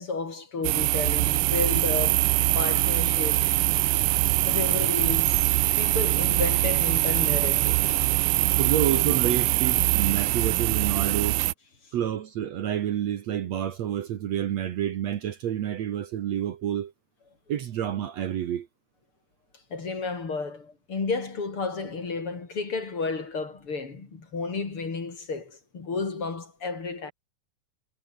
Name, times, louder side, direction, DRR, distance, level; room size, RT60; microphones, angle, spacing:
voice 1, 0.0-3.4 4.5-8.1 19.7-27.1, left 4 dB, 40° left, 4.3 m, -32 dB
sound 1, 0.6-11.5, right 20 dB, 80° right, 2.0 m, -23 dB
voice 2, 8.6-11.4 11.9-16.9 17.5-18.7, right 10 dB, 60° right, 2.3 m, -29 dB
omnidirectional pair, 3.8 m